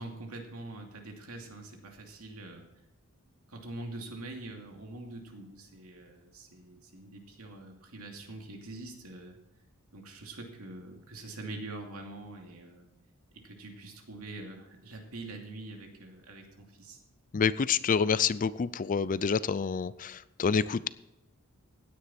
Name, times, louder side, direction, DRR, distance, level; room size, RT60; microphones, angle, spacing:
voice 1, 0.0-2.7 3.5-9.4 9.9-12.9 13.3-17.0, right 2 dB, 75° right, 2 dB, 2.6 m, -44 dB
voice 2, 17.3-20.9, left 6 dB, 40° left, 18 dB, 0.4 m, -28 dB
16.5 x 9.8 x 4.3 m, 0.94 s
head